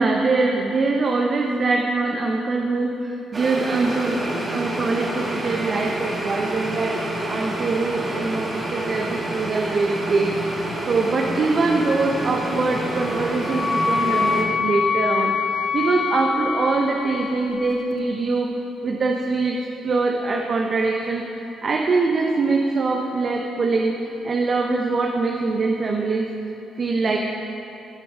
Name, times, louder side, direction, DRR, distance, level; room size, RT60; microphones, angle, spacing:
voice 1, 0.0-18.5 18.8-26.3 26.7-27.2, right 3 dB, 45° right, 1 dB, 0.8 m, -23 dB
sound 1, 3.3-14.4, right 1 dB, 30° right, 2.1 m, -28 dB
Wind instrument woodwind instrument, 12.9-17.7, left 5 dB, 45° left, 0.8 m, -25 dB
15.0 x 6.8 x 5.0 m, 2.9 s
cardioid pair, 90°, 0 cm